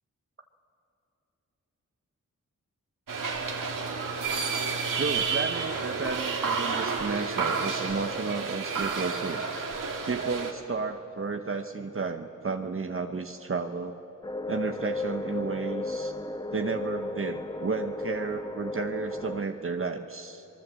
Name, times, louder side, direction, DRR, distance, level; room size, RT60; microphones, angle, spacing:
sound 1, 3.1-10.5, right 5 dB, 80° right, 2.4 m, -30 dB
voice 1, 4.9-9.4 10.1-14.0 14.5-16.1 16.5-20.4, right 4 dB, 40° right, 6 dB, 1.1 m, -32 dB
sound 2, 14.2-19.4, left 2 dB, 15° left, 0.8 m, -34 dB
27.5 x 21.0 x 7.6 m, 3.0 s
cardioid pair, 65°, 32 cm